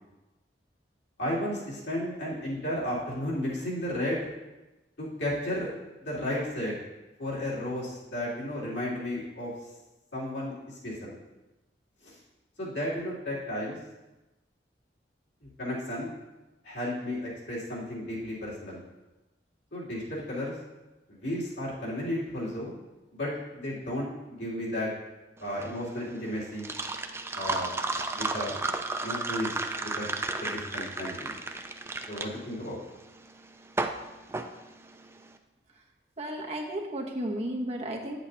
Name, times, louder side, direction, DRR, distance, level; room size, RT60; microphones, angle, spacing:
voice 1, 1.2-4.3 5.0-5.7 6.0-6.8 7.2-9.5 10.1-10.5 10.8-11.1 12.0-12.2 12.6-13.8 15.4-16.1 16.6-18.8 19.7-20.6 21.1-22.7 23.1-24.9 25.4-26.7 27.3-27.7 28.1-28.5 29.0-30.1 30.4-31.3 32.1-32.8, left 1 dB, 85° left, -7 dB, 3.0 m, -33 dB
sound 1, 25.4-35.3, right 3 dB, 15° right, 0.4 m, -33 dB
voice 2, 36.2-38.2, right 1 dB, 40° right, 0 dB, 1.0 m, -33 dB
8.7 x 7.9 x 2.8 m, 1.0 s
head